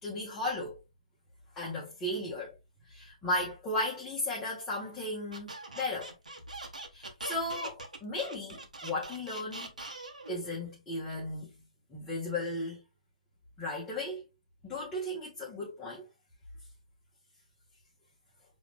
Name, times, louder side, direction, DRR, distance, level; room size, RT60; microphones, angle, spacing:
voice 1, 0.0-0.8 1.5-2.6 2.9-6.1 6.9-9.7 10.3-11.5 11.9-12.8 13.6-14.3 14.6-16.1, left 1 dB, 15° left, 1.5 m, -35 dB
Squeak, 5.3-10.4, right 2 dB, 75° right, 1.3 m, -42 dB
6.8 x 3.2 x 2.4 m
figure-of-eight pair, 130°, 4 cm